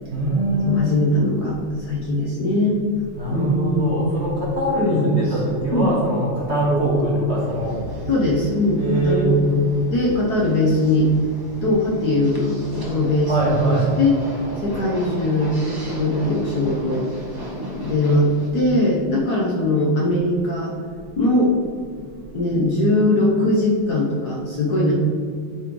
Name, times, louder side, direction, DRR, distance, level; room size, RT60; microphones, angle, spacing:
voice 1, 0.0-1.0 3.1-8.2 8.8-9.4 11.5-11.7 13.3-14.0 14.6-14.7 17.4-17.8 21.0-21.3 21.8-22.5, right 1 dB, 35° right, -6 dB, 1.7 m, -23 dB
voice 2, 0.7-2.8 3.3-3.9 4.8-5.3 5.7-5.9 8.1-9.4 9.9-11.1 11.6-14.2 14.6-17.0 17.7-20.7 21.2-21.5 22.3-24.9, left 1 dB, 55° left, -3 dB, 1.4 m, -20 dB
sound 1, 7.4-18.5, equal, 15° right, 0.9 m, -35 dB
9.4 x 4.4 x 3.8 m, 2.3 s
omnidirectional pair, 2.4 m